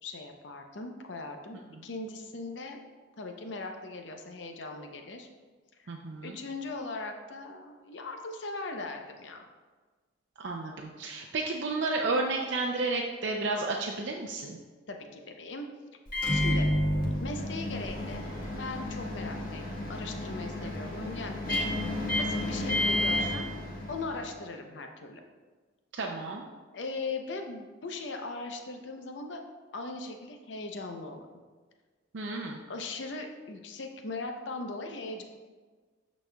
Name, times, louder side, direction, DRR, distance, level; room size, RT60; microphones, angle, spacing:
voice 1, 0.0-2.8 3.2-5.3 5.8-5.9 6.2-9.4 14.9-15.7 16.3-16.7 17.2-18.3 18.5-21.7 22.2-23.5 23.9-25.2 26.7-29.4 29.7-31.3 32.7-35.2, left 3 dB, 65° left, 4 dB, 0.6 m, -39 dB
voice 2, 5.9-6.4 10.4-14.6 26.0-26.5 32.1-32.6, right 3 dB, 65° right, 0 dB, 0.5 m, -32 dB
Microwave oven, 16.1-24.2, left 1 dB, 50° left, 1.3 m, -31 dB
12.0 x 4.1 x 2.3 m, 1.4 s
head